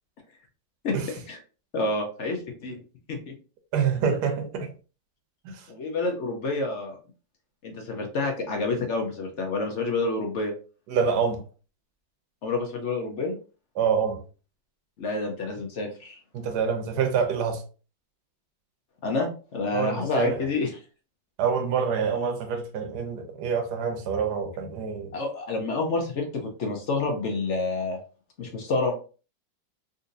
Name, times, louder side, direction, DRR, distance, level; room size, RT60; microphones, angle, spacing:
voice 1, 1.7-2.7 3.1-3.3 5.7-7.0 7.6-10.5 12.4-13.4 15.0-16.2 19.0-20.7 25.1-26.3 26.6-28.0 28.4-28.9, left 3 dB, 60° left, 0.8 m, -28 dB
voice 2, 3.7-4.7 5.4-5.7 10.9-11.4 13.8-14.2 16.3-17.6 19.7-20.5 21.4-25.1, right 6 dB, 65° right, 1.2 m, -26 dB
3.9 x 2.7 x 2.6 m
omnidirectional pair, 2.0 m